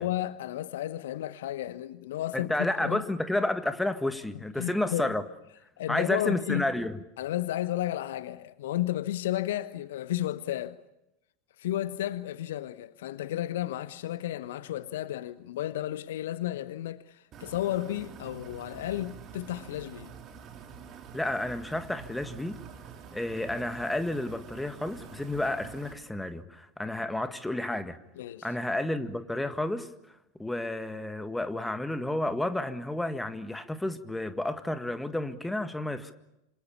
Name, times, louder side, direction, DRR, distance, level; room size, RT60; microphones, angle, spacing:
voice 1, 0.0-3.0 4.6-5.1 5.8-6.7 7.2-10.8 11.6-20.1 28.2-28.5, left 13 dB, 60° left, 1.0 m, -33 dB
voice 2, 2.3-5.2 5.9-7.0 21.1-22.6 23.1-28.0 28.4-29.9 30.4-36.1, left 1 dB, 5° left, 1.8 m, -31 dB
sound 1, 17.3-25.9, right 7 dB, 35° right, 3.2 m, -47 dB
27.0 x 26.5 x 7.2 m
figure-of-eight pair, 80°, 0 cm